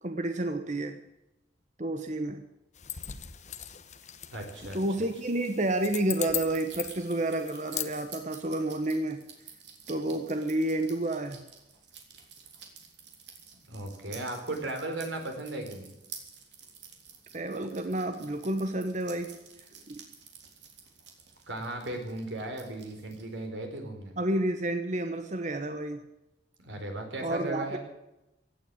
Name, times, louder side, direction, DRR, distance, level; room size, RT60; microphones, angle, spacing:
voice 1, 0.0-1.0 1.8-2.4 4.7-9.2 9.9-11.4 17.3-19.3 19.9-20.0 24.2-26.1 27.2-27.8, right 1 dB, 40° right, 7 dB, 1.1 m, -30 dB
sound 1, 2.8-7.9, left 10 dB, 40° left, 1.1 m, -39 dB
voice 2, 4.3-4.8 13.7-15.9 21.5-24.2 26.6-27.8, right 2 dB, 90° right, 4 dB, 4.4 m, -36 dB
sound 2, 4.8-23.5, right 6 dB, 70° right, 3.4 m, -51 dB
16.5 x 9.3 x 8.9 m, 0.92 s
head